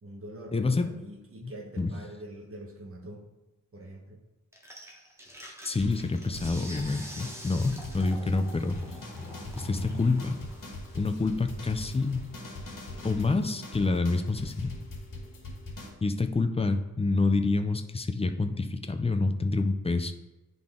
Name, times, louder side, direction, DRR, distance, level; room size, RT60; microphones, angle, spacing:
voice 1, 0.0-3.2 3.7-4.2, right 1 dB, 40° right, 1 dB, 1.1 m, -44 dB
voice 2, 0.5-0.9 1.4-1.9 5.6-8.8 9.6-10.4 10.9-12.3 13.0-14.8 16.0-20.1, left 3 dB, 20° left, 7 dB, 0.4 m, -27 dB
sound 1, 4.5-13.8, equal, 10° right, 1.1 m, -48 dB
sound 2, 5.8-15.9, left 2 dB, 80° left, 2.0 m, -41 dB
10.5 x 4.0 x 3.7 m, 1.0 s
wide cardioid pair, 160°, 32 cm